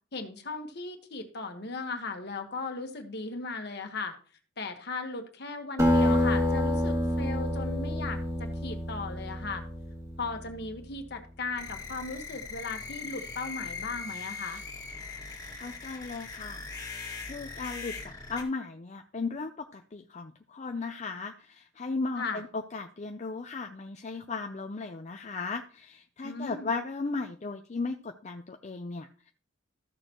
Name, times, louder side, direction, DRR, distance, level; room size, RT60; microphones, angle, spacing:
voice 1, 0.1-4.1 4.6-9.6 10.2-14.6 22.2-22.4 26.2-26.7, left 3 dB, 60° left, 6 dB, 1.4 m, -37 dB
Acoustic guitar, 5.8-10.6, left 1 dB, 15° right, 2.0 m, -28 dB
sound 1, 11.6-18.4, left 4 dB, 20° left, 2.1 m, -40 dB
voice 2, 15.5-16.7 17.2-29.3, left 3 dB, 40° left, 5 dB, 0.5 m, -36 dB
14.0 x 6.7 x 3.0 m, 0.40 s
head